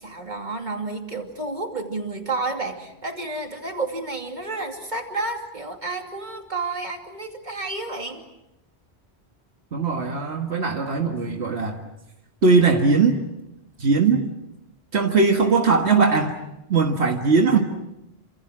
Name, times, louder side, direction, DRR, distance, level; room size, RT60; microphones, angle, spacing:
voice 1, 0.0-8.2, right 3 dB, 45° right, 3 dB, 2.9 m, -30 dB
voice 2, 9.7-11.8 12.4-13.2 13.8-14.3 14.9-16.4 16.7-17.6, right 4 dB, 85° right, 3 dB, 2.0 m, -19 dB
28.0 x 26.5 x 6.2 m, 0.89 s
omnidirectional pair, 1.1 m